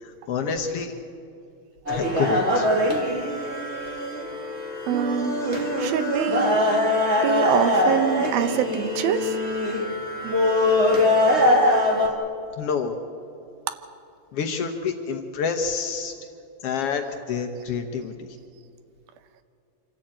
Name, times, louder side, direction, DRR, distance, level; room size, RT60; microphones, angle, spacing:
voice 1, 0.0-0.9 1.9-2.7 10.5-11.0 11.4-11.7 12.6-13.0 14.3-16.1 16.6-18.3, left 6 dB, 85° left, 4 dB, 1.3 m, -28 dB
sound 1, 1.9-12.1, left 1 dB, 25° right, 1.7 m, -22 dB
voice 2, 4.9-5.4 5.8-6.6 7.2-9.4, right 8 dB, 80° right, 10 dB, 2.8 m, -25 dB
26.0 x 13.5 x 8.8 m, 2.6 s
omnidirectional pair, 4.2 m